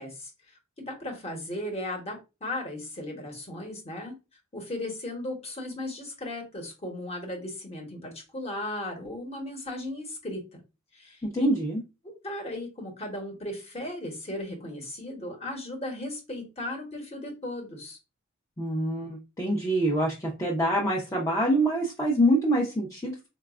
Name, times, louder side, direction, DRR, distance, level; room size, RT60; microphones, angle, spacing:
voice 1, 0.0-4.2 4.5-10.6 10.9-11.5 12.0-18.0, left 1 dB, 30° left, 2 dB, 0.9 m, -36 dB
voice 2, 11.3-11.8 18.6-23.3, right 1 dB, 15° left, -2 dB, 0.5 m, -25 dB
3.9 x 2.3 x 2.3 m, 0.27 s
head